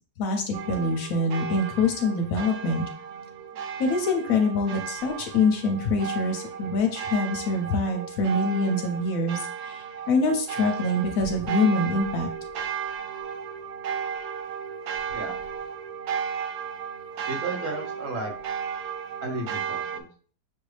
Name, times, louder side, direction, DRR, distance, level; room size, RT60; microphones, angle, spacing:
voice 1, 0.2-2.8 3.8-12.3, left 2 dB, 65° left, 4 dB, 1.0 m, -25 dB
sound 1, 0.5-20.0, right 7 dB, 70° right, 1.0 m, -34 dB
voice 2, 15.1-15.4 17.3-18.3 19.2-20.1, right 2 dB, 55° right, 1 dB, 1.2 m, -33 dB
5.9 x 2.6 x 3.2 m, 0.43 s
omnidirectional pair, 1.7 m